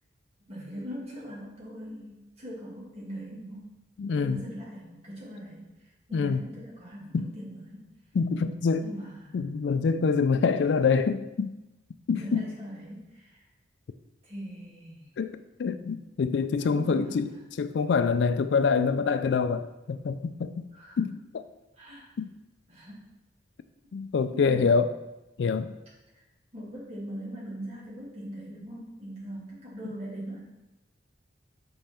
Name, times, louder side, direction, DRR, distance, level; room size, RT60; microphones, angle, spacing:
voice 1, 0.5-3.8 4.1-7.9 8.8-9.4 10.6-10.7 12.1-13.5 14.2-15.1 16.5-17.4 20.7-21.0 21.8-22.1 22.7-23.1 24.3-24.8 26.1-26.2 26.5-30.4, equal, 30° right, -5 dB, 2.2 m, -41 dB
voice 2, 4.0-4.4 6.1-6.4 7.1-7.2 8.1-8.9 9.3-11.5 12.1-12.4 15.2-17.3 17.6-20.7 21.0-21.4 22.2-22.3 23.9-24.9 25.4-25.7, left 5 dB, 65° left, 11 dB, 0.3 m, -26 dB
6.3 x 5.4 x 4.4 m, 1.0 s
head